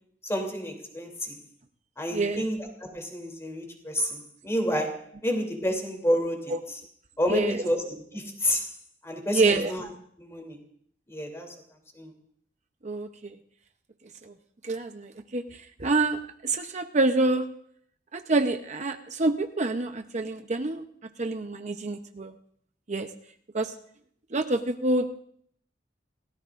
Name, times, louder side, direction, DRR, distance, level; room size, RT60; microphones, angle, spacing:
voice 1, 0.2-1.4 2.0-6.8 7.2-8.7 9.0-9.9 10.2-10.6 11.1-11.5 11.9-12.1, equal, 15° left, 3 dB, 3.0 m, -29 dB
voice 2, 2.1-2.4 6.5-6.6 7.3-7.6 9.3-9.7 12.8-13.3 14.3-14.4 14.6-15.4 15.8-17.4 18.1-20.8 21.2-22.3 22.9-23.1 23.5-23.7 24.3-25.1, right 2 dB, 40° right, 6 dB, 0.8 m, -27 dB
28.5 x 17.5 x 2.5 m, 0.62 s
head